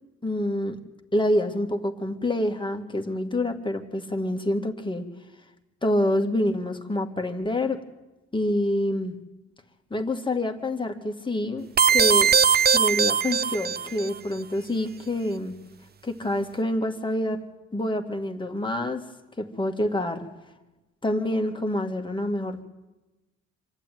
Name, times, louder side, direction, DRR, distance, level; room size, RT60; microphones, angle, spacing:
voice 1, 0.2-0.8 1.1-5.0 5.8-7.8 8.3-9.2 9.9-12.3 12.7-15.5 16.0-17.4 17.7-19.0 19.4-20.3 21.0-22.6, left 1 dB, 15° left, 4 dB, 1.9 m, -27 dB
sound 1, 11.8-14.1, right 7 dB, 35° right, 0.6 m, -20 dB
26.0 x 12.0 x 9.2 m, 1.1 s
cardioid pair, 90°, 30 cm